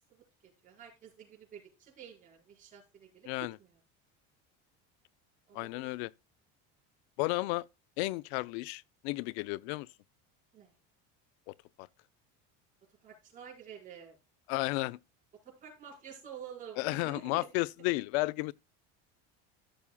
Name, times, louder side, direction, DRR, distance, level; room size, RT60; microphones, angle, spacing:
voice 1, 0.6-3.8 5.5-5.9 10.5-10.7 13.0-14.2 15.4-17.5, right 8 dB, 25° right, 4.8 m, -49 dB
voice 2, 5.5-6.1 7.2-7.6 8.0-9.9 11.5-11.6 14.5-15.0 16.8-18.5, left 22 dB, 90° left, 0.5 m, -33 dB
15.0 x 7.1 x 2.2 m
cardioid pair, 170°, 31 cm